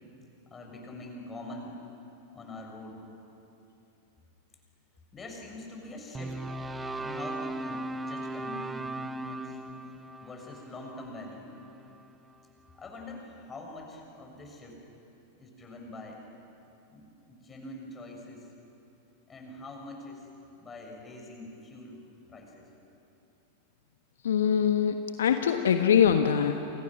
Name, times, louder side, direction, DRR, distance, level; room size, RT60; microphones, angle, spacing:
voice 1, 0.5-1.8 2.3-3.0 5.1-6.5 6.9-9.6 10.2-11.5 12.7-14.9 15.3-16.2 16.9-18.5 19.3-20.3 20.6-22.0 22.3-22.7, left 2 dB, 20° left, 1 dB, 6.6 m, -44 dB
sound 1, 6.1-12.4, right 2 dB, 10° right, 1.1 m, -38 dB
voice 2, 24.2-26.5, left 8 dB, 65° left, 6 dB, 1.3 m, -23 dB
29.5 x 28.5 x 6.4 m, 2.8 s
figure-of-eight pair, 90°, 0 cm